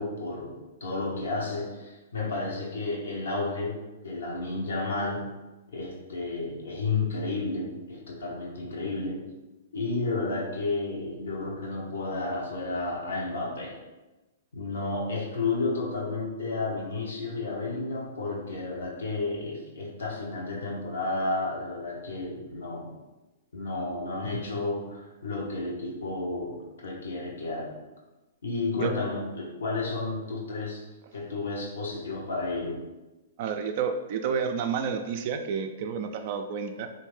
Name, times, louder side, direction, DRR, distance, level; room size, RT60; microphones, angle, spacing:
voice 1, 0.0-5.3 5.7-9.2 9.7-13.8 14.5-22.9 23.5-27.7 28.4-30.9 31.1-32.8, left 3 dB, 75° left, -2 dB, 0.9 m, -32 dB
voice 2, 33.4-36.9, right 6 dB, 50° right, 6 dB, 0.3 m, -30 dB
3.3 x 2.6 x 3.1 m, 1.1 s
hypercardioid pair, 115°, 0 cm